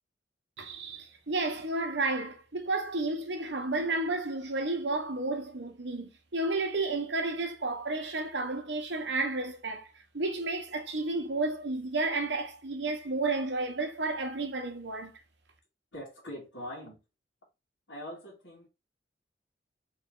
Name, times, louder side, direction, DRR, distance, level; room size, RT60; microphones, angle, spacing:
voice 1, 0.6-9.9 10.1-15.1, right 2 dB, 70° right, 1.1 m, -32 dB
voice 2, 15.9-17.0 17.9-18.7, equal, 90° left, 2.0 m, -42 dB
3.8 x 3.2 x 3.7 m
head